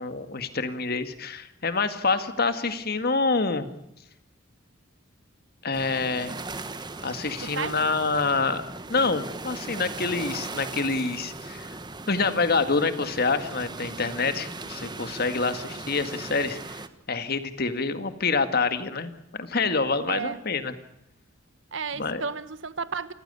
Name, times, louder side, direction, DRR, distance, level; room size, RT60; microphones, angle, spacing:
voice 1, 0.0-3.7 5.6-6.4 7.0-8.6 8.9-11.8 12.1-16.8 17.1-20.7 21.9-22.2, left 4 dB, 50° left, 1.9 m, -27 dB
sound 1, 5.7-16.9, right 3 dB, 20° right, 1.2 m, -38 dB
voice 2, 7.4-7.9 20.1-20.4 21.7-23.1, right 5 dB, 65° right, 1.3 m, -32 dB
29.0 x 15.5 x 6.8 m
head